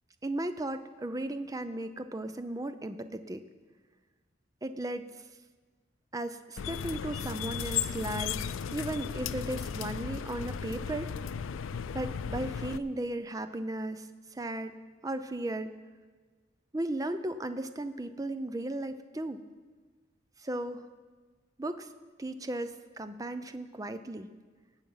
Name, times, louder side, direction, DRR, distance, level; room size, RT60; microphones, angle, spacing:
voice 1, 0.2-3.4 4.6-5.1 6.1-8.4 8.7-11.1 11.9-14.8 15.0-15.7 16.7-19.4 20.4-20.8 21.6-21.9 22.2-24.3, right 1 dB, 20° right, 11 dB, 0.5 m, -36 dB
sound 1, 6.6-12.8, left 7 dB, 90° left, 0.4 m, -35 dB
18.5 x 7.3 x 5.6 m, 1.4 s
head